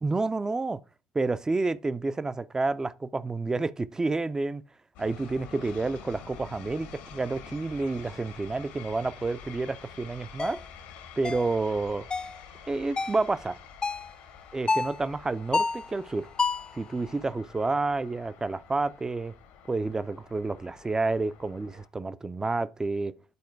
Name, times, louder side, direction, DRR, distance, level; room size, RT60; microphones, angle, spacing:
voice 1, 0.0-0.8 1.1-4.6 5.0-10.6 11.2-12.1 12.7-13.6 14.5-16.3 16.7-19.3 19.7-23.1, right 3 dB, 20° right, 0.6 m, -29 dB
sound 1, 4.9-21.9, left 6 dB, 70° left, 1.4 m, -48 dB
sound 2, 10.4-10.6 11.2-11.5 12.1-12.4 13.0-13.2 13.8-14.1 14.7-15.0 15.5-15.9 16.4-16.7, left 4 dB, 25° left, 0.5 m, -28 dB
9.6 x 4.3 x 4.6 m
hypercardioid pair, 55°, 3 cm